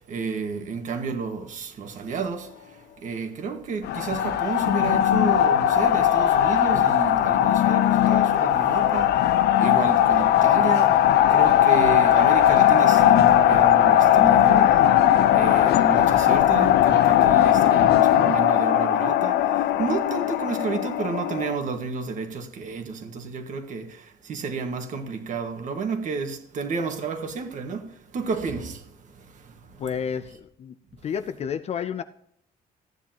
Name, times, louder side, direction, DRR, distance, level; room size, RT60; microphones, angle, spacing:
voice 1, 0.1-2.5 3.0-9.1 9.6-10.9 11.3-14.8 15.3-19.4 19.8-23.8 24.3-27.8 28.1-28.8, right 5 dB, 50° right, 1.6 m, -31 dB
sound 1, 3.8-21.6, left 11 dB, 85° left, 0.6 m, -19 dB
voice 2, 29.8-30.8 31.0-32.0, left 7 dB, 40° left, 0.4 m, -30 dB
14.5 x 9.7 x 2.9 m
cardioid pair, 170°, 16 cm